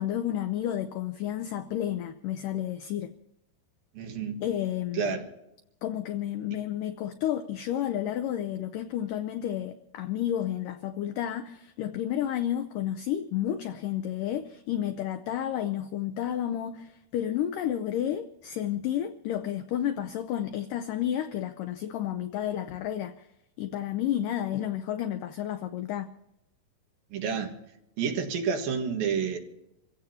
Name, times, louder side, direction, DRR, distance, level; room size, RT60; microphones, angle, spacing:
voice 1, 0.0-3.1 4.4-5.1 5.8-23.3 23.6-26.1, left 11 dB, 85° left, 1.9 m, -31 dB
voice 2, 3.9-4.4 4.9-5.3 27.1-27.5 28.0-29.4, right 6 dB, 65° right, 3.2 m, -29 dB
27.5 x 16.0 x 2.9 m
omnidirectional pair, 4.7 m